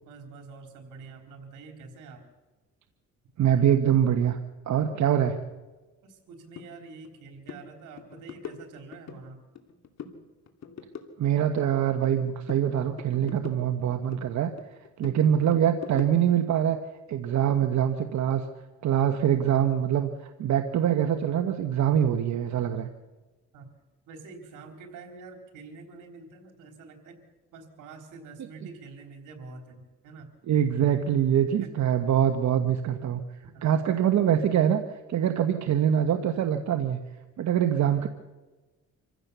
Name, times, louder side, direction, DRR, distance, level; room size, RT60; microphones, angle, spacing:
voice 1, 0.0-2.3 4.8-5.0 6.0-9.5 23.5-23.7 24.1-27.2 27.5-30.3 31.5-31.8 33.4-33.9, right 4 dB, 90° right, 4 dB, 3.7 m, -46 dB
voice 2, 3.4-4.4 4.7-5.4 11.2-14.5 15.0-16.8 17.1-18.4 18.8-22.9 30.5-33.2 33.6-34.8 35.1-37.0 37.4-38.1, right 9 dB, 65° right, 7 dB, 1.3 m, -24 dB
sound 1, 6.6-6.7 7.0-7.2 7.5-7.6 8.0-9.2 9.6-10.2 10.5-12.2 12.5-14.3 14.6-16.4, left 6 dB, 60° left, 2.5 m, -42 dB
26.0 x 15.5 x 6.9 m, 1.2 s
cardioid pair, 90°, 30 cm